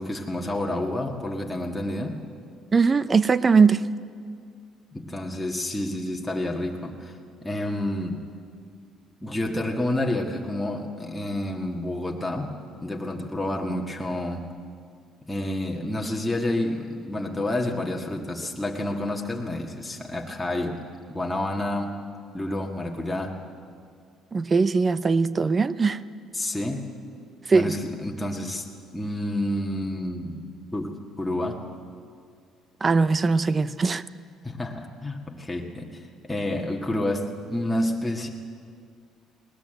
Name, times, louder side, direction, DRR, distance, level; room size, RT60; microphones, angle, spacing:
voice 1, 0.0-2.2 4.9-8.2 9.2-12.5 12.8-14.5 15.3-20.8 21.1-21.9 22.3-23.4 26.3-26.8 27.5-28.7 28.9-30.4 30.7-31.6 34.4-38.3, left 1 dB, 5° left, 1.8 m, -29 dB
voice 2, 2.7-3.8 24.3-26.0 27.5-27.7 32.8-34.0, right 4 dB, 30° right, 0.6 m, -20 dB
19.5 x 19.0 x 7.9 m
cardioid pair, 95°, 0 cm